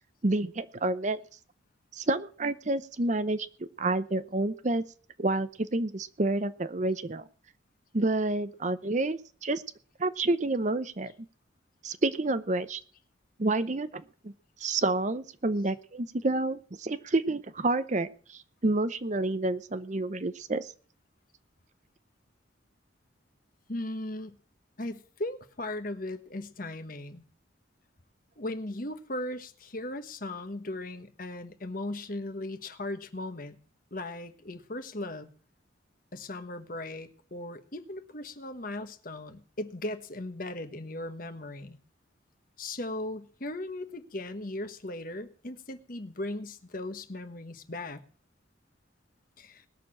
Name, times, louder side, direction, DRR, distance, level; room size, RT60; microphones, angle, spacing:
voice 1, 0.2-1.2 1.9-3.5 3.8-4.8 5.2-7.2 7.9-9.6 10.0-11.1 11.8-12.8 13.4-14.3 14.6-20.7, right 2 dB, 35° right, 13 dB, 0.7 m, -29 dB
voice 2, 23.7-24.4 24.8-27.2 28.4-33.6 33.9-35.3 36.1-41.8 42.6-48.0 49.4-49.6, left 1 dB, 45° left, 9 dB, 1.3 m, -37 dB
19.5 x 6.8 x 7.6 m, 0.43 s
head